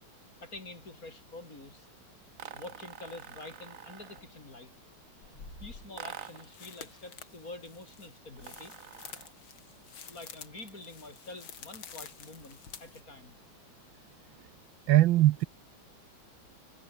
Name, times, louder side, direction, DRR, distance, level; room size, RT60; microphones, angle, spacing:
voice 1, 0.4-1.9 2.5-4.7 5.6-8.7 10.1-13.4, left 2 dB, 40° left, 5.4 m, -47 dB
sound 1, 2.4-4.4 6.0-6.6 8.4-9.4, right 8 dB, 45° right, 1.4 m, -46 dB
sound 2, 4.2-4.3 5.2-13.0, left 7 dB, 70° left, 2.9 m, -49 dB
voice 2, 14.9-15.4, right 15 dB, 75° right, 1.4 m, -21 dB
omnidirectional pair, 2.3 m